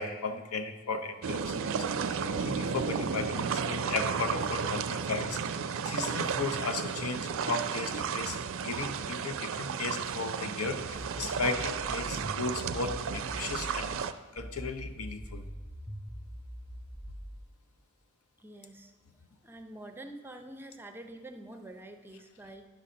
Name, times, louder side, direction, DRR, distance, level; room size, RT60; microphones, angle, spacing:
voice 1, 0.0-1.8 2.0-5.4 5.9-13.9 14.3-15.4, left 3 dB, 75° left, 8 dB, 0.7 m, -35 dB
sound 1, 1.2-14.1, right 6 dB, 65° right, 0.4 m, -33 dB
sound 2, 10.9-14.0 14.4-17.4, equal, 10° left, 1.3 m, -43 dB
voice 2, 18.4-18.9 19.4-22.7, right 1 dB, 10° right, 6 dB, 0.5 m, -46 dB
10.0 x 4.2 x 6.3 m, 1.2 s
head